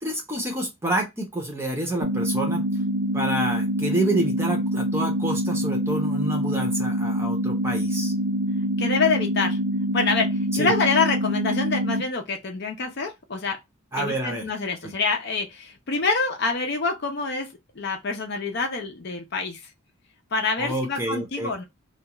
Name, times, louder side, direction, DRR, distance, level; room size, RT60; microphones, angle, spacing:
voice 1, 0.0-2.6 3.1-8.1 10.5-10.8 13.9-14.4 14.8-14.9 20.6-21.5, right 1 dB, 10° right, 0.6 m, -28 dB
sound 1, 2.0-12.0, equal, 90° right, 0.5 m, -25 dB
voice 2, 8.8-9.6 9.9-13.6 14.0-17.5 17.8-19.7 20.3-21.6, left 4 dB, 50° left, 0.5 m, -26 dB
2.3 x 2.3 x 2.9 m
head